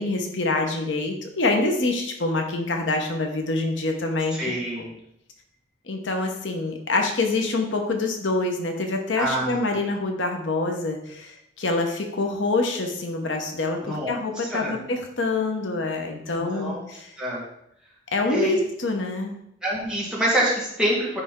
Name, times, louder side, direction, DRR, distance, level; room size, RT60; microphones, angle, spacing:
voice 1, 0.0-4.4 5.9-17.1 18.1-19.3, left 2 dB, 80° left, 3 dB, 0.9 m, -26 dB
voice 2, 4.3-4.9 9.2-9.8 13.8-14.1 14.5-14.7 16.4-16.8 17.2-17.4 18.3-18.6 19.6-21.2, right 1 dB, 5° right, -6 dB, 1.9 m, -26 dB
9.8 x 3.3 x 3.7 m, 0.77 s
head